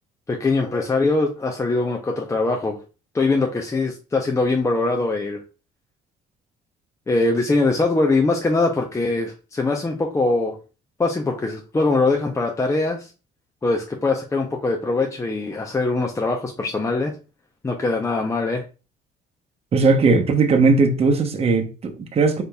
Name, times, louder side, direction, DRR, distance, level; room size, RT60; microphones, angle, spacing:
voice 1, 0.3-2.8 3.1-5.4 7.1-10.6 11.0-13.1 13.6-17.1 17.6-18.6, left 3 dB, 15° left, 0.7 m, -22 dB
voice 2, 19.7-22.4, right 4 dB, 35° right, 0.9 m, -18 dB
5.1 x 4.1 x 2.3 m
cardioid pair, 110°, 17 cm